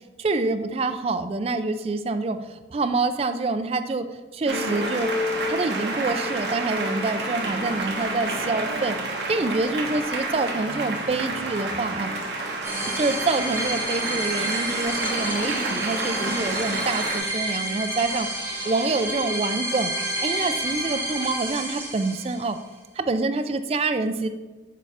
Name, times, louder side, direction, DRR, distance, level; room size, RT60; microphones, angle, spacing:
voice 1, 0.2-5.1 5.5-9.0 9.3-12.1 13.0-18.3 18.6-22.6 23.0-24.3, right 3 dB, 35° right, 9 dB, 0.3 m, -26 dB
sound 1, 4.5-17.2, right 1 dB, 70° right, 1.1 m, -29 dB
sound 2, 12.6-22.6, right 1 dB, 15° right, 0.9 m, -30 dB
6.6 x 3.2 x 4.9 m, 1.3 s
head